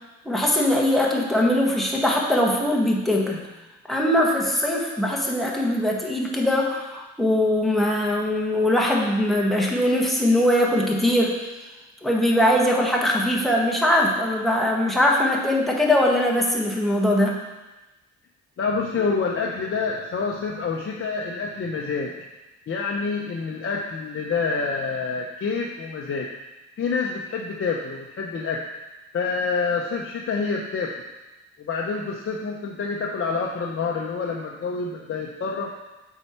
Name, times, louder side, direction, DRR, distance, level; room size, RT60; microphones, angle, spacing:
voice 1, 0.2-3.5 3.9-11.4 12.0-17.4, left 1 dB, ahead, -2 dB, 1.4 m, -21 dB
voice 2, 18.6-22.1 22.7-26.3 26.8-28.6 29.1-30.9 31.6-35.7, left 4 dB, 45° left, -1 dB, 0.8 m, -27 dB
7.7 x 4.6 x 4.5 m, 1.1 s
cardioid pair, 90°, 30 cm